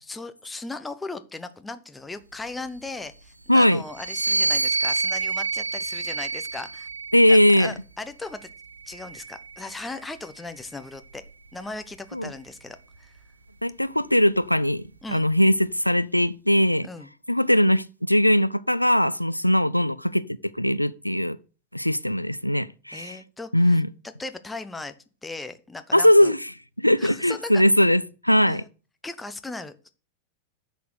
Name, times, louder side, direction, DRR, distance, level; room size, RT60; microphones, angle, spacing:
voice 1, 0.0-6.9 7.3-8.5 8.9-11.2 11.5-13.1 15.0-15.3 16.8-17.1 22.9-23.8 24.2-24.9 25.2-26.3 27.0-27.6 28.5-28.7 29.0-29.9, left 3 dB, 10° left, 0.9 m, -37 dB
voice 2, 3.5-3.8 7.1-7.7 12.1-12.3 13.6-14.8 15.1-16.9 17.3-21.4 21.7-23.2 23.5-23.9 25.9-26.4 26.8-28.6, left 1 dB, 90° left, 0.3 m, -20 dB
sound 1, 3.9-7.5 8.4-10.0, right 3 dB, 80° right, 0.6 m, -28 dB
10.0 x 4.2 x 6.6 m
figure-of-eight pair, 90°, 0 cm